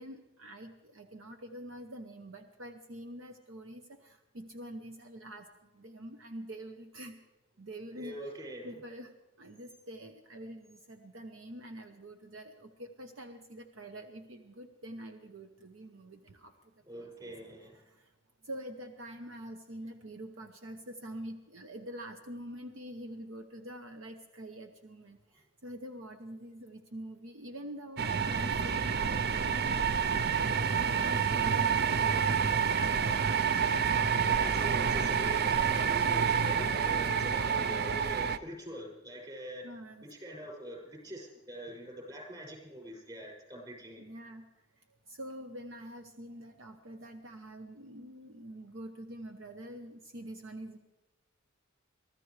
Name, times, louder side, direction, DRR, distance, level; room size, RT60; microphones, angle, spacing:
voice 1, 0.0-5.5 5.7-7.2 7.6-8.2 8.6-9.1 9.4-16.5 17.0-17.3 17.6-18.1 18.4-30.5 30.7-32.7 33.9-35.3 39.6-40.1 40.9-41.0 44.0-44.4 45.1-50.8, right 1 dB, 65° right, 5 dB, 0.9 m, -46 dB
voice 2, 7.9-8.7 16.9-17.8 34.2-39.7 40.0-44.0, equal, 20° right, -1 dB, 6.4 m, -44 dB
sound 1, 28.0-38.4, right 6 dB, 50° right, 0.5 m, -28 dB
23.5 x 14.5 x 3.3 m, 1.1 s
head